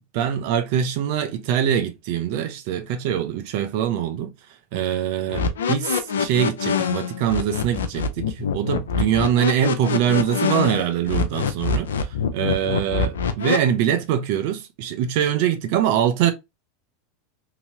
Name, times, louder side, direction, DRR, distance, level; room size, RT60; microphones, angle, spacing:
voice 1, 0.1-4.3 4.7-16.3, right 10 dB, 60° right, 0.7 m, -23 dB
sound 1, 5.3-13.6, left 6 dB, 90° left, 0.5 m, -24 dB
2.9 x 2.8 x 2.8 m
hypercardioid pair, 105°, 0 cm